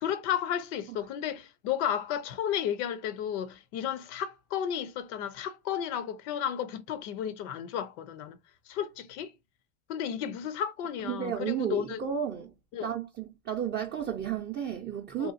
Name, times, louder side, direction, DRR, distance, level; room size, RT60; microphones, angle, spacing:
voice 1, 0.0-8.4 8.7-9.3 9.9-12.0 12.7-12.9 15.2-15.3, left 9 dB, 70° left, 0.6 m, -33 dB
voice 2, 11.0-12.5 12.8-15.3, right 9 dB, 30° right, 0.5 m, -33 dB
2.9 x 2.3 x 2.5 m
supercardioid pair, 100°, 37 cm